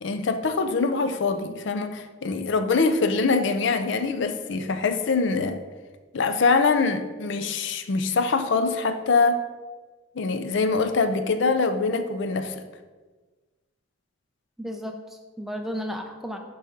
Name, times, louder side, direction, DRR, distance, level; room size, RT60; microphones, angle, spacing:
voice 1, 0.0-5.6 6.1-9.4 10.2-12.6, left 4 dB, 60° left, 9 dB, 0.5 m, -24 dB
voice 2, 14.6-16.4, equal, ahead, 3 dB, 0.5 m, -33 dB
11.5 x 4.1 x 3.8 m, 1.3 s
head